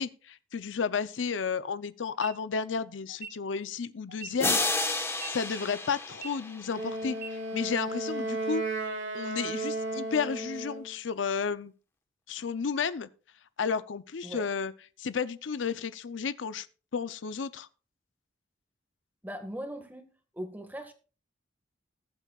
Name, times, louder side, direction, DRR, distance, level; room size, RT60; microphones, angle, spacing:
voice 1, 0.0-4.6 5.3-8.6 9.1-11.7 12.3-13.1 13.6-14.7 15.0-16.7 16.9-17.7, left 5 dB, 85° left, 0.6 m, -32 dB
sound 1, 2.1-2.3 3.1-3.3 4.1-4.3 5.1-5.3 6.1-6.3 7.1-7.3, right 6 dB, 55° right, 1.0 m, -41 dB
sound 2, 4.4-7.1, left 2 dB, 15° left, 1.2 m, -31 dB
Wind instrument woodwind instrument, 6.7-10.9, right 2 dB, 80° right, 2.7 m, -34 dB
voice 2, 19.2-20.1 20.3-20.9, equal, 10° right, 1.7 m, -39 dB
20.5 x 8.2 x 2.4 m
head